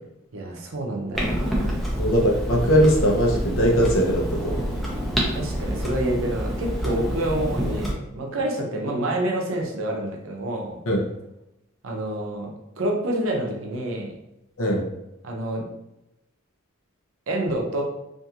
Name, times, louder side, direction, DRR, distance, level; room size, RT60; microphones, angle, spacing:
voice 1, 0.3-1.8 5.3-10.8 11.8-12.5 12.8-14.1 15.2-15.6 17.3-17.8, right 1 dB, 75° right, 0 dB, 0.6 m, -28 dB
Clock, 1.1-7.9, equal, ahead, 0.4 m, -27 dB
voice 2, 2.0-4.6 10.9-11.0 14.6-14.8, equal, 90° left, 0 dB, 0.7 m, -20 dB
2.5 x 2.4 x 2.8 m, 0.88 s
head